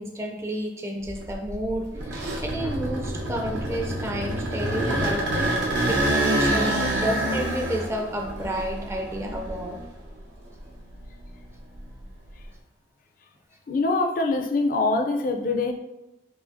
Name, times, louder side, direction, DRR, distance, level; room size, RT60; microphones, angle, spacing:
voice 1, 0.0-5.3 5.9-9.8, equal, 15° right, 2 dB, 0.4 m, -31 dB
sound 1, 1.1-10.1 10.6-12.4, right 1 dB, 90° right, 0.7 m, -27 dB
voice 2, 13.7-15.7, left 3 dB, 50° left, 4 dB, 0.4 m, -24 dB
4.9 x 2.8 x 2.6 m, 0.97 s
head